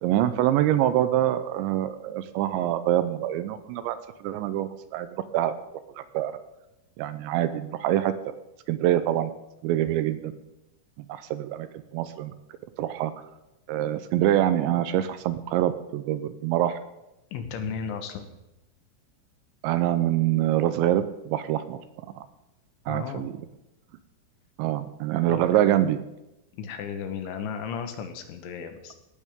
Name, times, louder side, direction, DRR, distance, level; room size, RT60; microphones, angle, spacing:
voice 1, 0.0-4.0 4.2-5.1 5.3-5.5 6.0-6.3 7.0-8.3 8.7-9.3 9.6-10.3 11.0-11.7 11.9-12.3 12.8-13.1 13.7-16.8 19.6-21.8 22.2-22.3 22.9-23.3 24.6-26.0, right 12 dB, 80° right, 11 dB, 2.7 m, -25 dB
voice 2, 17.3-18.3 22.9-23.3 25.3-25.4 26.5-28.9, left 6 dB, 75° left, 6 dB, 3.6 m, -34 dB
17.5 x 14.5 x 3.7 m, 0.93 s
omnidirectional pair, 5.6 m